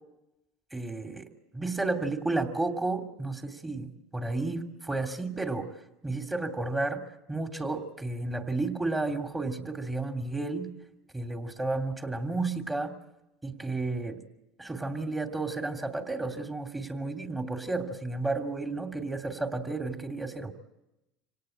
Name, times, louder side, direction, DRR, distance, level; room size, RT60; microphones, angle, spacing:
voice 1, 0.7-1.3 1.5-5.7 6.0-10.7 11.1-12.9 13.4-14.2 14.6-20.5, right 2 dB, 15° right, 5 dB, 2.8 m, -32 dB
25.5 x 18.0 x 8.8 m, 0.93 s
hypercardioid pair, 85°, 0 cm